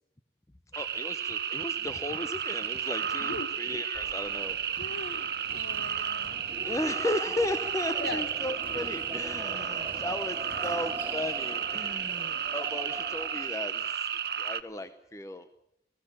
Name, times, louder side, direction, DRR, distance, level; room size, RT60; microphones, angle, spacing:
voice 1, 0.7-4.6 6.6-14.1 14.4-15.5, left 1 dB, 20° left, 0.7 m, -35 dB
sound 1, 0.7-14.6, right 8 dB, 60° right, 0.9 m, -33 dB
voice 2, 3.2-3.6 4.8-6.4 8.0-8.3 8.7-8.9, left 2 dB, 70° left, 1.2 m, -40 dB
sound 2, 3.9-13.5, right 1 dB, 10° right, 2.8 m, -43 dB
19.0 x 16.5 x 8.6 m
head